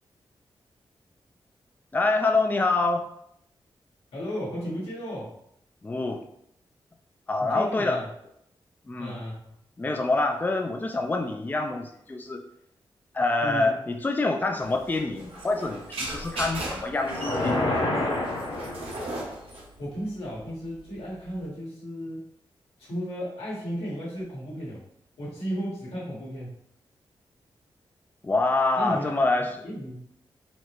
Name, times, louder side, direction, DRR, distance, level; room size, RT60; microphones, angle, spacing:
voice 1, 1.9-3.1 5.8-6.2 7.3-8.0 8.9-9.2 9.8-12.4 13.1-17.7 28.2-29.6, left 2 dB, 20° left, 4 dB, 0.4 m, -26 dB
voice 2, 4.1-5.3 7.4-8.1 9.0-9.5 13.4-13.8 19.8-22.2 22.8-24.8 25.2-26.5 28.7-29.2 29.6-30.0, equal, 90° left, -6 dB, 1.5 m, -34 dB
sound 1, 14.6-21.4, right 1 dB, 80° right, 1.0 m, -38 dB
sound 2, 17.0-19.3, left 2 dB, 65° left, 0.8 m, -28 dB
4.1 x 2.0 x 3.0 m, 0.73 s
cardioid pair, 65°, 10 cm